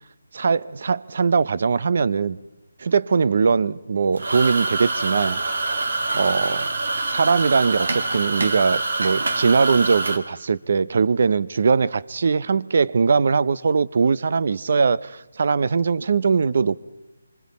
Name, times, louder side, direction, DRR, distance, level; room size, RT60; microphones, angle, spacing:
voice 1, 0.3-2.4 2.8-5.4 5.7-5.8 6.1-6.7 7.1-16.8, right 5 dB, 50° right, 0.6 m, -21 dB
sound 1, 4.1-10.2, right 3 dB, 70° right, 2.1 m, -25 dB
26.0 x 25.0 x 4.2 m
hypercardioid pair, 170°, 0 cm